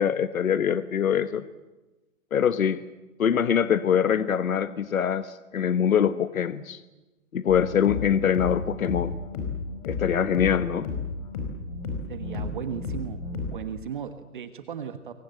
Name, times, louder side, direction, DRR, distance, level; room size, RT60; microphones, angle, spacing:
voice 1, 0.0-1.4 2.3-2.8 3.2-6.8 7.3-9.2 9.9-10.9, left 8 dB, 70° left, 12 dB, 1.4 m, -24 dB
sound 1, 7.5-13.6, left 4 dB, 25° left, 5.0 m, -33 dB
voice 2, 12.1-13.2 13.5-15.1, right 8 dB, 35° right, 9 dB, 1.3 m, -36 dB
28.0 x 23.5 x 7.8 m, 1.1 s
hypercardioid pair, 170°, 43 cm